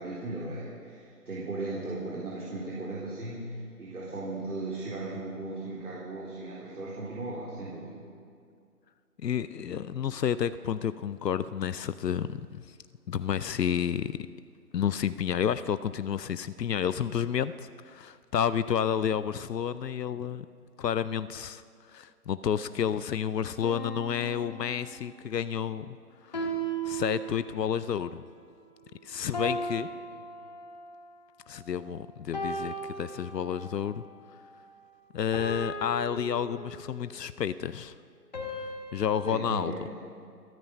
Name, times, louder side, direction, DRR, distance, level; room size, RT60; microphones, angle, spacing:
voice 1, 0.0-8.0 39.2-39.8, right 2 dB, 65° right, -6 dB, 4.0 m, -37 dB
voice 2, 9.2-12.8 13.1-14.2 14.7-20.5 20.8-21.6 21.9-26.0 26.2-26.4 26.8-28.2 29.0-29.9 31.5-34.0 35.1-37.9 38.9-39.7, left 8 dB, 85° left, 14 dB, 0.7 m, -30 dB
sound 1, 23.6-25.3 26.3-27.8 29.3-31.0 32.3-33.8 35.3-37.1 38.3-39.4, right 2 dB, 25° left, 1.9 m, -37 dB
28.0 x 9.5 x 5.4 m, 2.3 s
hypercardioid pair, 180°, 48 cm